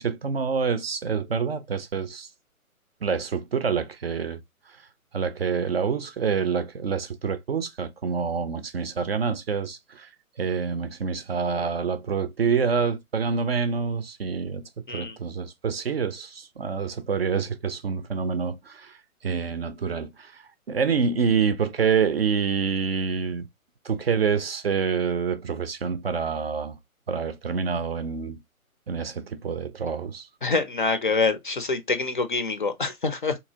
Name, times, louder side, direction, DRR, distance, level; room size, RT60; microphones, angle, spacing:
voice 1, 0.0-2.3 3.0-4.4 5.1-10.1 10.4-19.0 19.2-23.5 23.8-26.8 27.1-28.4 28.9-30.3, right 6 dB, 45° right, 0.5 m, -27 dB
voice 2, 30.4-33.4, left 4 dB, 40° left, 0.4 m, -26 dB
3.7 x 2.8 x 2.7 m
figure-of-eight pair, 135°, 43 cm